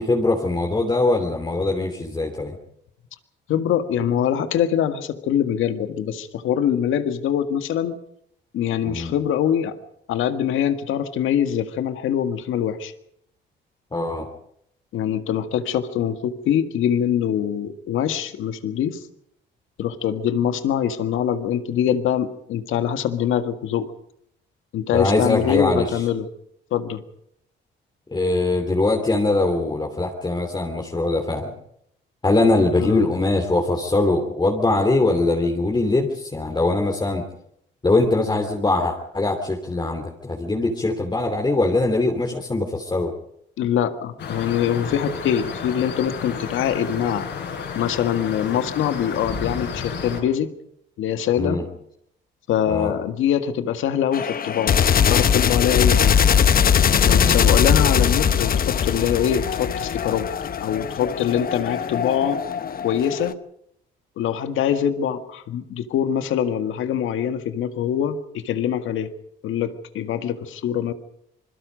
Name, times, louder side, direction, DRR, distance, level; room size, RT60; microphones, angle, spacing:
voice 1, 0.0-2.6 8.8-9.1 13.9-14.3 24.9-25.9 28.1-31.5 32.2-37.2 37.8-43.1 51.4-51.6 52.7-52.9 57.0-57.4, left 2 dB, 20° left, 1 dB, 3.0 m, -22 dB
voice 2, 3.5-8.0 8.5-9.8 10.1-12.9 14.9-19.0 19.8-23.9 24.7-26.3 26.7-27.0 32.8-33.0 43.6-47.3 47.7-50.5 51.0-51.6 52.5-56.2 57.0-60.3 60.6-62.4 62.8-63.4 64.2-69.1 69.4-70.9, left 9 dB, 85° left, 9 dB, 1.8 m, -23 dB
sound 1, 44.2-50.2, left 6 dB, 65° left, 6.6 m, -31 dB
sound 2, 54.1-63.3, left 8 dB, 45° left, 0.9 m, -20 dB
27.0 x 21.5 x 5.2 m, 0.73 s
cardioid pair, 90°, 20 cm